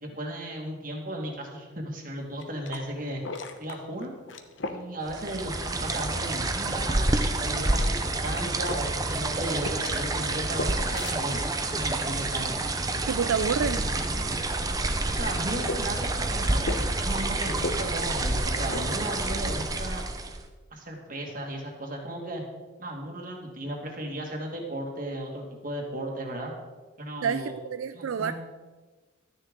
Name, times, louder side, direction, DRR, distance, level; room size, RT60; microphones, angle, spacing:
voice 1, 0.0-3.2 3.6-4.1 4.7-7.1 7.4-11.5 11.8-12.6 15.1-16.6 17.0-20.0 20.7-22.4 22.8-26.5 27.0-27.5 27.9-28.3, right 1 dB, 45° right, 1 dB, 2.0 m, -35 dB
sound 1, 2.2-20.0, left 2 dB, 70° left, 0.9 m, -41 dB
sound 2, 5.1-20.5, right 2 dB, 20° right, 0.7 m, -28 dB
Train / Engine / Alarm, 7.1-15.4, right 1 dB, 5° right, 1.3 m, -48 dB
voice 2, 13.1-13.9 27.2-28.3, right 6 dB, 90° right, 11 dB, 0.4 m, -28 dB
13.0 x 9.9 x 3.8 m, 1.3 s
head